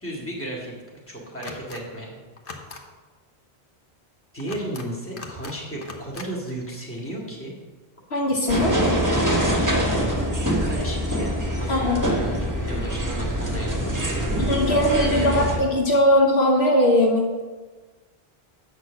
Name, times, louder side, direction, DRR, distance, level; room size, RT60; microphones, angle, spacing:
voice 1, 0.0-0.7 1.1-2.1 4.3-7.5 8.8-9.0 10.6-15.6, right 1 dB, 10° left, -4 dB, 2.2 m, -34 dB
sound 1, 1.4-1.8 2.4-2.8 4.4-4.9 5.2-5.6 5.8-6.3, left 4 dB, 55° left, 1.1 m, -39 dB
voice 2, 8.1-8.7 11.7-12.0 14.4-17.4, left 1 dB, 75° left, 0 dB, 1.6 m, -20 dB
sound 2, 8.5-15.6, equal, 15° right, 1.5 m, -24 dB
8.4 x 6.2 x 6.5 m, 1.3 s
omnidirectional pair, 1.1 m